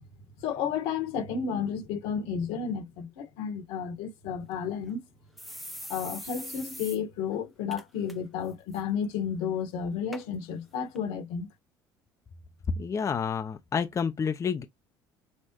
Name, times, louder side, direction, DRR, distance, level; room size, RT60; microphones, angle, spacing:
voice 1, 0.4-5.0 5.9-11.5, left 7 dB, 75° left, 1.6 m, -32 dB
sound 1, 4.4-4.5 4.9-5.0 5.4-7.0 7.3-7.4 7.7-8.1 8.5-8.8 9.5-9.6 10.1-10.2 11.0-11.1, equal, ahead, 0.8 m, -42 dB
voice 2, 12.7-14.6, left 6 dB, 30° left, 0.7 m, -29 dB
6.5 x 2.4 x 3.0 m
supercardioid pair, 90°, 10 cm